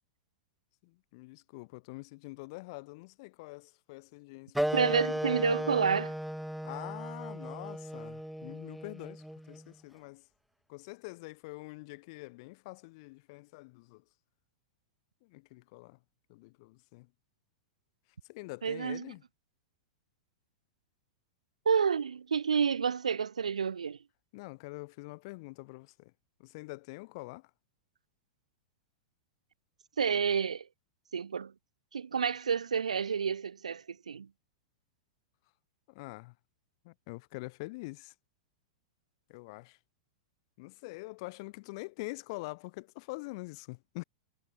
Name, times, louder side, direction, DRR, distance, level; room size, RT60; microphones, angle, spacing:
voice 1, 0.8-4.9 6.6-10.3 10.7-14.0 15.2-16.0 16.3-17.1 18.3-19.2 24.3-26.1 26.4-27.5 35.9-36.3 36.8-38.1 39.3-39.8 40.6-44.0, left 25 dB, 50° left, 1.8 m, -45 dB
Wind instrument woodwind instrument, 4.5-9.7, equal, ahead, 1.2 m, -36 dB
voice 2, 4.7-6.2 18.6-19.1 21.7-24.0 30.0-30.7 31.1-31.5 31.9-34.3, right 6 dB, 75° right, 0.4 m, -29 dB
figure-of-eight pair, 95°, 4 cm